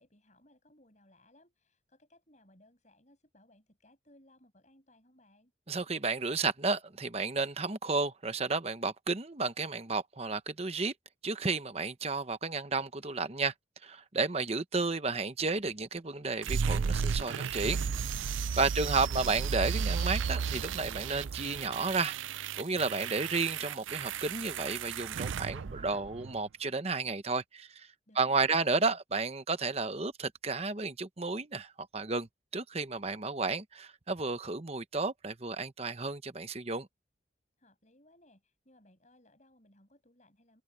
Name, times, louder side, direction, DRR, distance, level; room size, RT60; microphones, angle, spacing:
voice 1, 0.0-5.5 28.1-28.8 37.6-40.6, left 1 dB, 40° left, 6.3 m, -63 dB
voice 2, 5.7-10.9 11.2-13.5 13.8-17.8 18.6-22.2 22.6-27.7 28.2-32.3 32.5-36.9, right 3 dB, 30° right, 0.9 m, -32 dB
sound 1, 16.4-26.4, right 6 dB, 85° right, 0.5 m, -34 dB
head